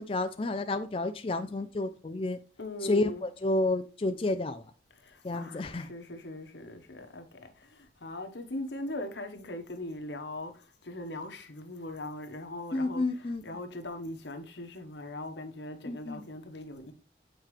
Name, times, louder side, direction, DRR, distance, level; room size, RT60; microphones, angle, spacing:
voice 1, 0.0-2.4 2.8-4.6 5.2-5.9 12.7-13.4 15.9-16.3, left 2 dB, 30° left, 0.4 m, -30 dB
voice 2, 2.6-3.2 4.9-16.9, left 1 dB, 85° left, 1.2 m, -40 dB
7.9 x 4.4 x 3.3 m
head